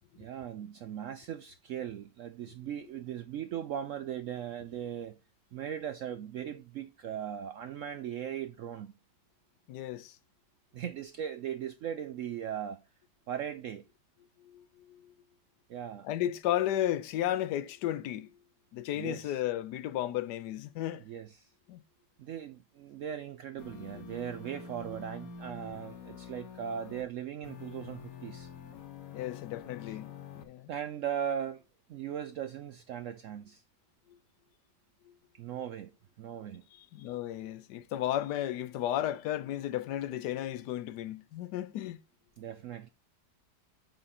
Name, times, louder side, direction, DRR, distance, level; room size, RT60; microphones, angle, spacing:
voice 1, 0.2-5.1 5.5-8.9 10.7-12.8 13.3-13.8 15.7-16.1 18.9-19.4 21.0-21.5 22.2-28.5 29.8-30.0 30.7-31.6 31.9-33.6 35.3-35.9 36.2-36.7 42.4-42.9, right 9 dB, 75° right, 0.7 m, -38 dB
voice 2, 9.7-10.2 14.4-15.1 16.0-18.3 18.7-21.0 21.7-21.8 29.1-30.7 36.9-42.0, left 12 dB, 75° left, 1.2 m, -34 dB
sound 1, 23.6-27.1 27.4-30.4, left 6 dB, 60° left, 1.4 m, -46 dB
8.9 x 3.8 x 4.2 m
omnidirectional pair, 1.8 m